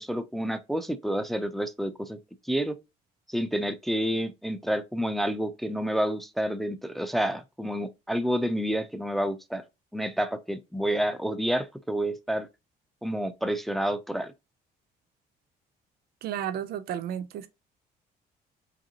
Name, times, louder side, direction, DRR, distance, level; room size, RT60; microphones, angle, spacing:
voice 1, 0.0-2.2 2.5-2.8 3.3-9.6 9.9-12.5 13.0-14.3, equal, ahead, 0.4 m, -29 dB
voice 2, 16.2-17.5, right 10 dB, 70° right, 0.5 m, -32 dB
5.0 x 2.7 x 2.8 m
cardioid pair, 110°, 17 cm